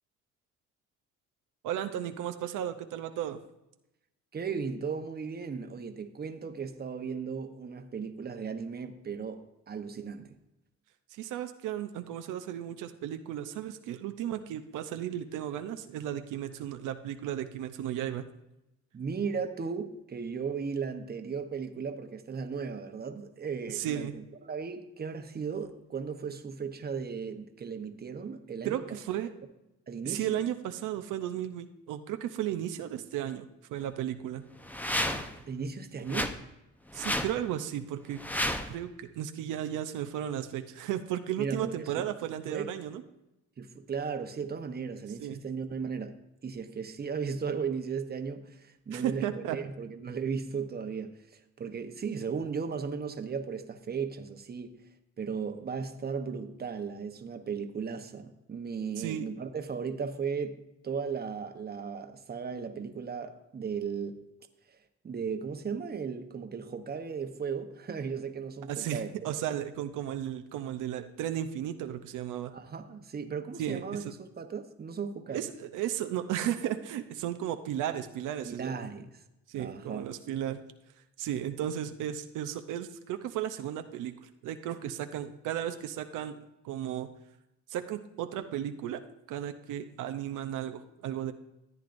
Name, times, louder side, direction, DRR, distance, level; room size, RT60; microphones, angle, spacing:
voice 1, 1.6-3.4 11.1-18.2 23.7-24.1 28.6-29.3 30.0-34.4 36.9-38.2 38.7-43.0 45.2-45.4 48.9-49.6 59.0-59.3 68.7-72.5 73.6-73.8 75.3-78.8 79.5-80.6 81.2-86.4 86.6-87.1 87.7-89.0 89.3-91.3, right 11 dB, 85° right, 8 dB, 0.6 m, -34 dB
voice 2, 4.3-10.4 18.9-29.0 29.9-30.4 35.5-36.3 41.4-42.0 42.5-42.7 43.6-46.2 46.4-54.8 55.2-64.3 64.7-64.8 65.0-69.4 72.5-75.5 78.4-79.2 79.5-80.1, right 6 dB, 30° right, 7 dB, 0.9 m, -36 dB
sound 1, 34.6-35.4 36.1-36.3 36.9-37.3 38.2-38.7, left 1 dB, 5° left, 0.7 m, -31 dB
14.0 x 9.1 x 2.6 m, 0.94 s
cardioid pair, 90°, 30 cm